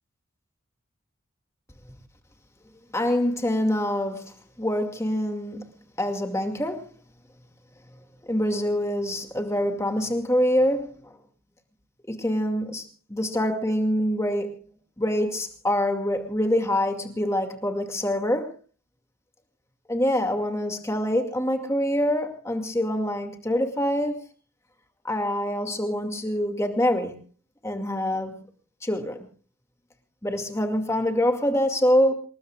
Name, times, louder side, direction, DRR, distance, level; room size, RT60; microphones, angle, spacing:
voice 1, 2.9-5.6 6.0-6.9 8.3-11.1 12.1-14.6 15.0-18.5 19.9-24.2 25.0-27.1 27.6-28.3 28.8-29.3 30.2-32.1, equal, 15° left, 2.3 m, -25 dB
28.5 x 20.5 x 2.4 m
head